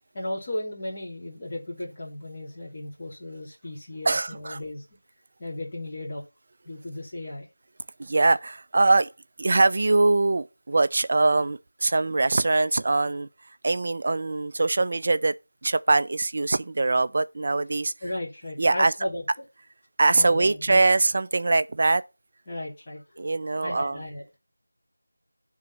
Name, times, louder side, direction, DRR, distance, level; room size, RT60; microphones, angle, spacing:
voice 1, 0.1-4.8 5.4-6.2 6.6-7.5 18.0-19.2 20.1-21.0 22.5-23.0 23.6-24.2, left 1 dB, 25° left, 2.4 m, -35 dB
voice 2, 4.1-4.6 8.0-9.1 9.4-13.3 13.6-15.3 15.6-17.9 18.6-18.9 20.0-22.0 23.2-24.0, right 3 dB, 40° right, 0.3 m, -22 dB
9.6 x 3.7 x 4.2 m
figure-of-eight pair, 170°, 0 cm